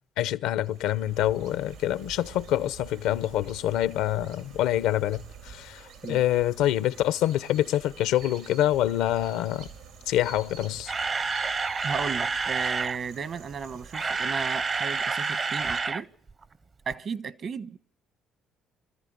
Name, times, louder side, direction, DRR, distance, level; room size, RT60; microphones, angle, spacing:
voice 1, 0.2-5.8 6.1-9.7 10.1-10.9, left 13 dB, 85° left, 0.8 m, -26 dB
sound 1, 0.6-15.8, right 6 dB, 85° right, 4.9 m, -48 dB
Camera, 10.6-13.0 13.7-16.0 16.3-16.4 16.9-17.0, right 4 dB, 35° right, 0.8 m, -29 dB
voice 2, 11.8-16.1 16.8-17.8, right 6 dB, 50° right, 1.2 m, -34 dB
24.0 x 13.5 x 9.4 m
cardioid pair, 90°, 0 cm